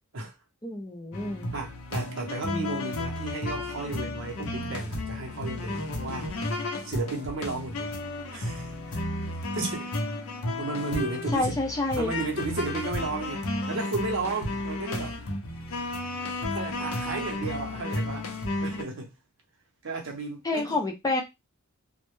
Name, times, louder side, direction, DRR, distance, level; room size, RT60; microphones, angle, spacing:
voice 1, 0.6-1.5 11.3-12.1 20.4-21.2, left 2 dB, 15° left, 0.4 m, -28 dB
sound 1, 1.1-18.8, left 1 dB, 75° left, 0.6 m, -33 dB
voice 2, 1.5-6.3 6.8-7.9 8.3-9.0 9.5-9.9 10.6-11.6 11.9-15.2 16.5-18.3 18.6-19.1 19.8-20.8, right 3 dB, 60° right, 0.7 m, -34 dB
2.1 x 2.0 x 3.0 m
head